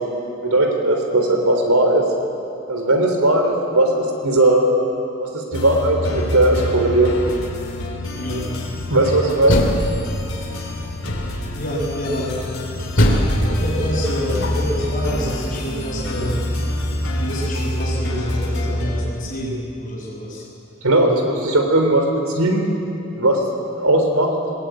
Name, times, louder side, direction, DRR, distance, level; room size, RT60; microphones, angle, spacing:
voice 1, 0.4-2.0 2.7-4.7 5.2-7.1 8.9-9.8 20.8-22.1 22.3-22.7 23.2-23.4 23.8-24.3, right 1 dB, 85° right, 3 dB, 3.8 m, -17 dB
sound 1, 5.5-19.0, left 1 dB, 80° left, 5.1 m, -26 dB
Door, 9.2-10.5 11.0-11.6 13.0-14.9, equal, 55° left, 3.0 m, -21 dB
voice 2, 11.5-12.3 13.3-16.4 17.2-20.4, equal, 35° left, -4 dB, 7.7 m, -27 dB
21.5 x 20.5 x 9.4 m, 2.8 s
head